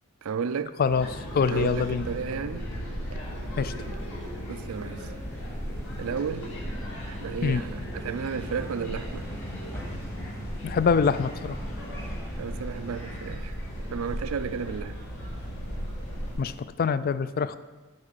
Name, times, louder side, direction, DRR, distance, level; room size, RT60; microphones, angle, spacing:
voice 1, 0.2-0.8 1.5-2.7 4.5-5.1 6.0-6.5 7.0-9.3 12.4-15.0, right 6 dB, 65° right, 0.4 m, -33 dB
sound 1, 0.8-6.2, right 3 dB, 85° right, 0.8 m, -51 dB
sound 2, 0.9-16.3, equal, 60° left, 2.8 m, -36 dB
voice 2, 1.3-2.1 3.6-3.7 7.4-7.6 10.6-11.6 16.4-17.6, left 5 dB, 40° left, 0.3 m, -24 dB
sound 3, 3.2-16.6, equal, 10° left, 1.1 m, -43 dB
8.6 x 5.4 x 6.6 m
head